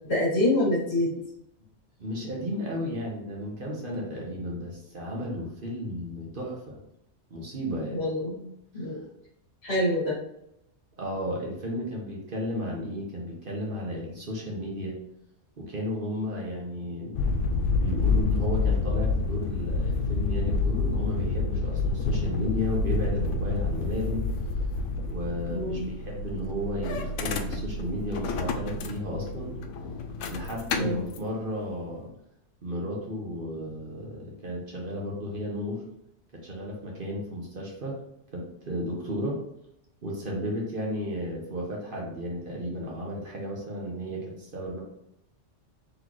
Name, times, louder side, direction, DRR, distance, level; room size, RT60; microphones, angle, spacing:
voice 1, 0.1-1.2 7.9-8.5 8.7-9.0 9.6-10.2 25.5-25.8 30.8-31.1, left 1 dB, 60° left, -4 dB, 1.8 m, -26 dB
voice 2, 2.0-6.8 7.3-8.0 8.8-8.9 11.0-15.0 15.6-17.2 17.7-24.2 25.1-29.5 30.3-32.1 32.6-35.8 36.3-38.0 38.3-39.4 40.0-44.8, equal, 50° right, -2 dB, 1.1 m, -33 dB
sound 1, 17.1-31.2, left 3 dB, 85° left, 0.9 m, -28 dB
4.1 x 3.3 x 3.0 m, 0.79 s
omnidirectional pair, 1.2 m